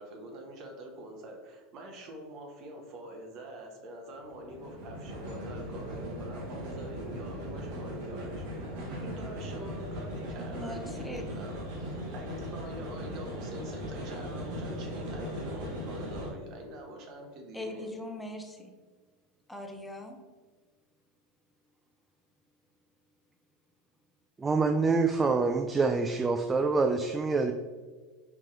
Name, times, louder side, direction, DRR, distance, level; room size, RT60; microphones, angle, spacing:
voice 1, 0.0-8.4 9.0-17.9, right 1 dB, 50° right, 2 dB, 1.0 m, -45 dB
sound 1, 4.2-16.3, equal, 70° right, 1.4 m, -38 dB
voice 2, 10.5-11.5 17.5-18.7 19.5-20.2, left 1 dB, 10° left, 3 dB, 0.7 m, -40 dB
voice 3, 24.4-27.5, right 4 dB, 20° right, 5 dB, 0.3 m, -26 dB
4.6 x 2.9 x 3.8 m, 1.4 s
hypercardioid pair, 90°, 0 cm